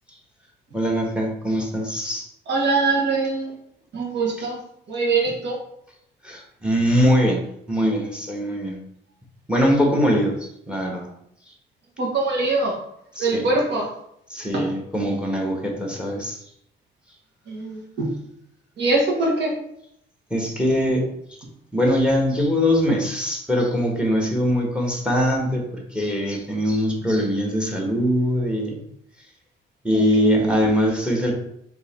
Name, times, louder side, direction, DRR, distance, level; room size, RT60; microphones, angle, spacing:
voice 1, 0.7-2.2 4.4-4.5 6.2-7.4 7.7-8.8 9.5-10.3 10.7-11.1 13.2-13.5 14.3-16.4 20.3-21.0 21.7-28.8 29.8-31.3, equal, 5° right, 0 dB, 1.2 m, -22 dB
voice 2, 2.5-3.5 3.9-4.6 4.9-5.6 12.0-12.8 13.2-13.9 14.5-14.7 17.5-18.1 18.8-19.5 29.9-30.5, right 3 dB, 60° right, -2 dB, 1.3 m, -23 dB
3.8 x 2.9 x 4.2 m, 0.74 s
cardioid pair, 90°, 20 cm